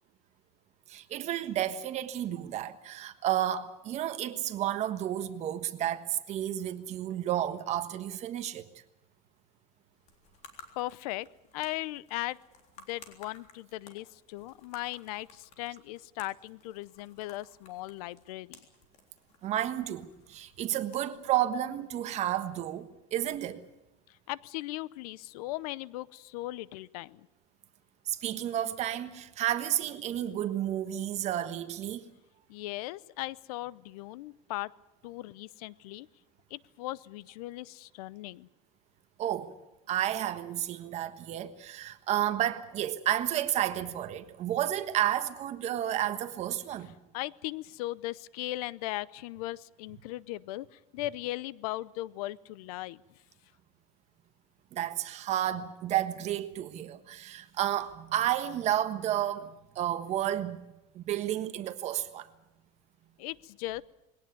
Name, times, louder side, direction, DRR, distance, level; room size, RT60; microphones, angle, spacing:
voice 1, 0.9-8.6 19.4-23.6 28.1-32.0 39.2-39.5 39.9-46.9 54.7-60.7 60.9-62.3, right 12 dB, 35° right, 1.4 m, -31 dB
sound 1, 9.9-22.4, left 5 dB, 35° left, 3.7 m, -57 dB
voice 2, 10.8-11.3 11.5-12.4 12.8-18.6 24.1-27.3 32.5-34.7 35.0-36.1 36.5-38.5 47.1-53.0 63.2-63.8, left 17 dB, 75° left, 0.7 m, -38 dB
21.5 x 17.5 x 9.4 m
supercardioid pair, 155°, 19 cm